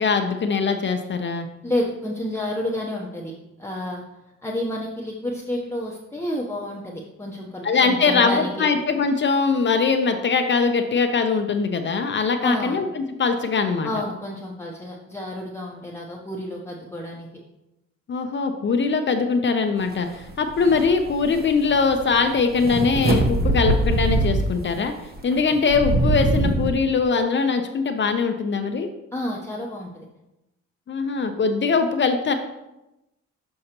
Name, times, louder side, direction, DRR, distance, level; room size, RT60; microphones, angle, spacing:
voice 1, 0.0-1.5 7.6-13.9 18.1-24.9 25.2-28.9 30.9-32.3, left 4 dB, 40° left, 6 dB, 0.6 m, -22 dB
voice 2, 1.6-3.3 3.6-4.0 4.4-8.7 12.4-12.8 13.8-17.3 29.1-30.1, left 1 dB, 10° left, -3 dB, 0.7 m, -30 dB
sound 1, 20.3-20.4 20.6-24.7 25.2-26.7, right 2 dB, 30° right, 0.9 m, -22 dB
6.5 x 5.6 x 2.9 m, 0.94 s
cardioid pair, 90°, 30 cm